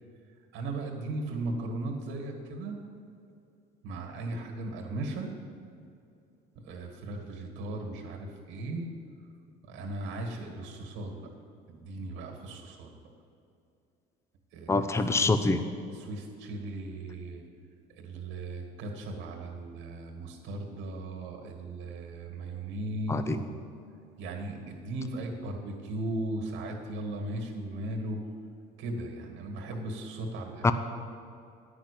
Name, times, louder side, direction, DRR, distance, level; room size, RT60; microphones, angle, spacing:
voice 1, 0.5-2.8 3.8-5.3 6.6-8.9 9.7-11.3 11.7-12.9 14.5-14.9 15.2-15.3 15.9-17.4 17.9-23.6 24.2-28.2 28.8-30.7, right 2 dB, 75° right, 2 dB, 2.1 m, -37 dB
voice 2, 14.7-15.6 23.1-23.4 30.6-30.7, left 3 dB, 15° left, 9 dB, 0.6 m, -25 dB
9.9 x 6.2 x 8.5 m, 2.5 s
cardioid pair, 100°, 20 cm